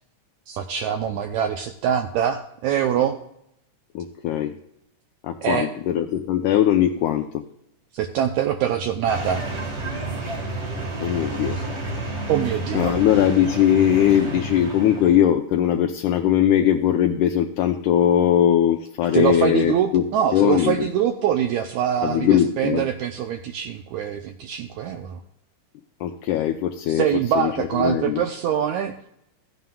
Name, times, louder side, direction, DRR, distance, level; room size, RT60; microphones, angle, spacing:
voice 1, 0.5-3.2 5.4-5.7 7.9-9.5 11.6-11.7 12.3-13.0 19.1-25.2 26.9-29.0, right 9 dB, 80° right, 5 dB, 1.7 m, -24 dB
voice 2, 4.0-4.6 5.2-7.4 11.0-11.6 12.7-20.1 20.3-20.9 22.0-22.8 26.0-27.1 27.4-27.5 27.8-28.3, left 10 dB, 80° left, 4 dB, 1.9 m, -20 dB
sound 1, 9.1-15.3, right 2 dB, 55° right, 0.7 m, -30 dB
15.5 x 9.4 x 2.3 m, 0.77 s
omnidirectional pair, 3.8 m